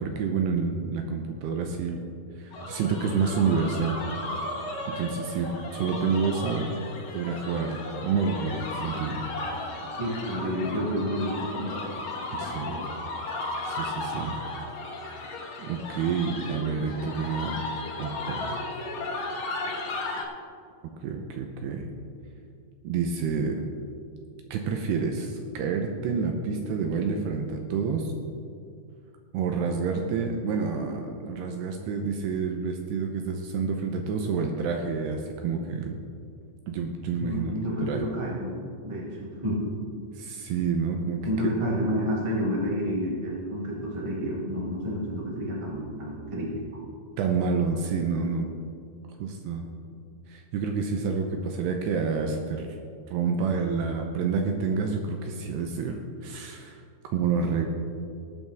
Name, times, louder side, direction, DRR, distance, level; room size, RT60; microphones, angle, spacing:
voice 1, 0.0-2.1 2.4-4.0 4.9-6.7 7.1-9.2 12.3-12.8 13.6-14.4 15.6-17.6 18.0-18.5 21.0-21.9 22.8-23.6 24.5-28.1 29.3-36.0 36.7-38.0 40.2-41.5 47.2-48.5 49.2-49.7 50.3-52.7 53.1-56.8 57.1-57.7, right 5 dB, 80° right, 3 dB, 2.6 m, -28 dB
sound 1, 2.5-20.2, left 2 dB, 65° left, 2.4 m, -35 dB
voice 2, 9.8-11.8 12.4-12.8 37.2-38.6 38.8-39.6 41.2-46.5, equal, 30° right, -5 dB, 0.5 m, -30 dB
20.0 x 8.2 x 3.5 m, 2.3 s
omnidirectional pair, 5.4 m